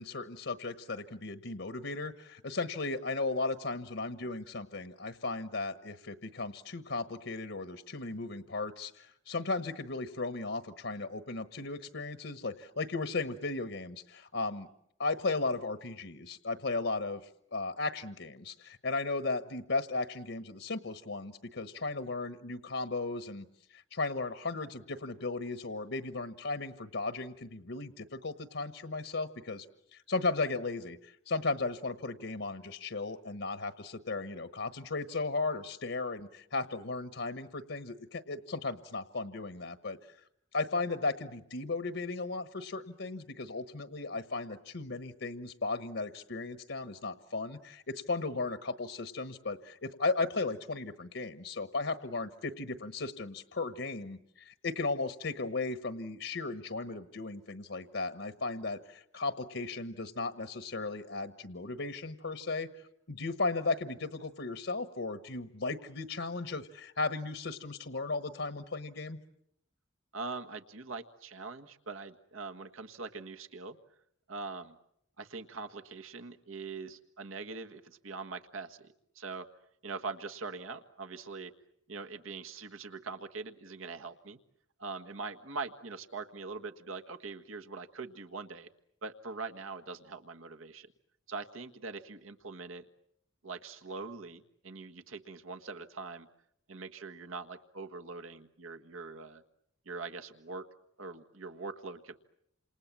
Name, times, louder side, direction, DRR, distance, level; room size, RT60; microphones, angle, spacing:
voice 1, 0.0-14.7 15.0-17.2 17.5-23.5 23.7-29.6 29.9-40.0 40.5-62.7 63.1-69.2, left 3 dB, 70° left, 10 dB, 1.2 m, -36 dB
voice 2, 70.1-73.8 74.3-74.8 75.2-79.5 79.8-81.5 81.9-84.4 84.8-88.7 89.0-90.9 91.3-92.8 93.4-96.3 96.7-99.4 99.8-100.7 101.0-102.2, right 4 dB, 85° right, 6 dB, 1.6 m, -42 dB
28.5 x 27.5 x 7.5 m, 0.73 s
head